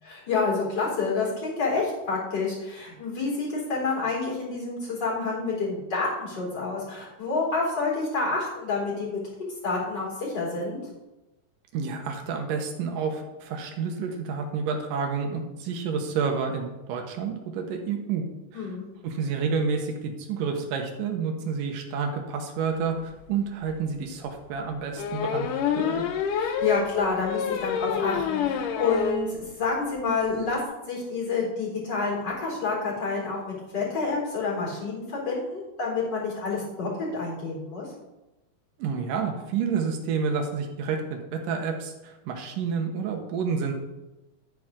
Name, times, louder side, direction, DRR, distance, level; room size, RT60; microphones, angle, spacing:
voice 1, 0.0-9.2 9.6-10.8 18.5-18.9 26.3-37.9, left 4 dB, 30° left, -4 dB, 4.4 m, -28 dB
voice 2, 11.7-18.2 18.5-18.7 19.0-25.5 25.7-26.1 38.8-43.7, right 5 dB, 85° right, 4 dB, 2.9 m, -29 dB
sound 1, 23.2-23.3 23.7-23.8 25.0-29.3 29.6-29.7 30.0-30.1 30.3-30.5, left 7 dB, 85° left, 2.4 m, -28 dB
11.5 x 9.3 x 3.8 m, 1.0 s
omnidirectional pair, 3.7 m